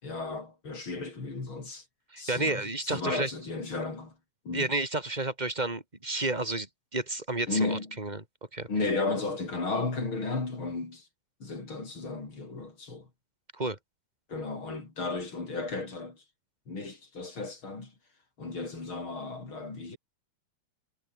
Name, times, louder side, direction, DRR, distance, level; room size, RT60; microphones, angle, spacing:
voice 1, 0.0-1.8 2.2-4.2 4.4-4.7 7.5-8.0 8.7-11.1 11.4-13.1 14.3-16.2 16.7-17.9 18.4-20.0, left 3 dB, 40° left, 5.9 m, -34 dB
voice 2, 2.1-3.3 4.5-8.2 8.5-8.7 13.5-13.8, right 2 dB, 15° right, 4.0 m, -31 dB
omnidirectional pair, 3.3 m